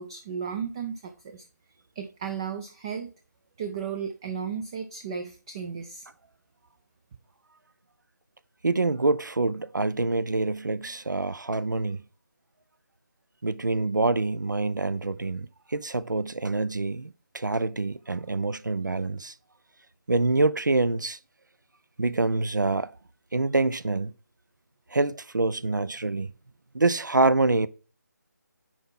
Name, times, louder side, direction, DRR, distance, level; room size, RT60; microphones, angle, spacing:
voice 1, 0.0-1.5 2.0-3.1 3.6-6.1, right 7 dB, 15° right, 0.4 m, -34 dB
voice 2, 8.6-12.0 13.4-19.3 20.1-21.2 22.0-22.9 23.3-24.1 24.9-26.3 26.7-27.7, right 3 dB, 75° right, 0.7 m, -26 dB
9.9 x 4.3 x 3.6 m
figure-of-eight pair, 155°, 10 cm